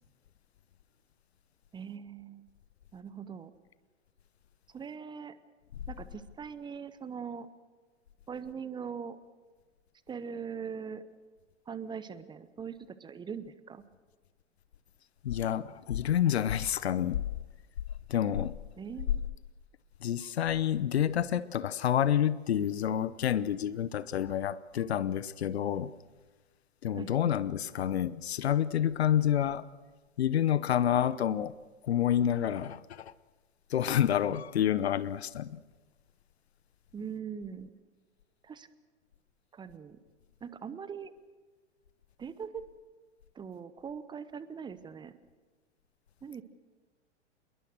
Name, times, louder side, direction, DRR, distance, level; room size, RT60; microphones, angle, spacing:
voice 1, 1.7-2.5 2.9-3.5 4.7-5.4 5.9-7.5 8.3-9.2 10.1-11.0 11.7-13.8 18.8-19.2 27.0-27.4 36.9-37.7 38.4-38.7 39.5-40.0 40.4-41.1 42.2-42.6 43.3-45.2 46.2-46.4, right 6 dB, 15° right, 0.9 m, -41 dB
voice 2, 15.2-17.2 18.1-18.6 20.0-25.9 26.8-29.6 30.2-31.5 31.8-33.1 33.7-35.6, left 10 dB, 60° left, 0.9 m, -28 dB
27.0 x 21.5 x 6.4 m
figure-of-eight pair, 100°, 35 cm